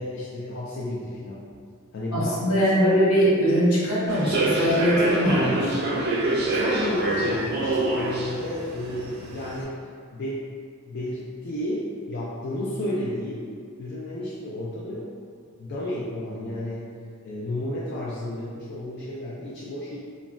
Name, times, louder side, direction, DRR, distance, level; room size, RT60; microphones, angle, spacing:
voice 1, 0.0-1.5 1.9-3.0 6.5-9.7 10.1-10.4 10.9-13.5 13.8-15.1 15.6-17.0 17.2-20.0, left 1 dB, 50° left, -7 dB, 0.3 m, -32 dB
voice 2, 2.1-5.8, equal, 75° left, -7 dB, 0.8 m, -21 dB
Human voice / Subway metro underground, 4.1-9.6, right 2 dB, 50° right, 0.4 m, -26 dB
3.1 x 2.0 x 2.5 m, 2.2 s
head